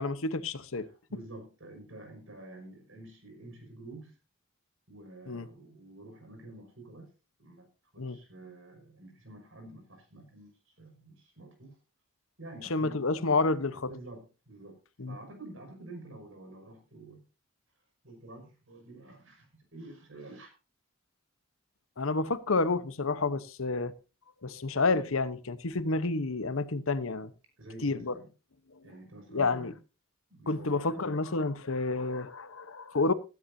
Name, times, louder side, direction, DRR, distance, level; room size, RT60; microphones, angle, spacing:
voice 1, 0.0-0.9 5.3-5.5 8.0-8.2 12.7-13.9 15.0-15.1 22.0-23.9 24.4-27.3 27.8-28.1 29.3-29.7 30.5-33.1, left 3 dB, 75° left, 1.0 m, -29 dB
voice 2, 0.8-4.1 4.9-7.1 7.4-7.7 7.9-10.5 10.8-11.8 12.4-13.0 13.7-14.8 15.1-17.2 18.0-20.5 27.6-28.3 28.8-29.8 30.3-31.1, right 2 dB, 65° right, 5.8 m, -49 dB
16.0 x 13.0 x 2.7 m
head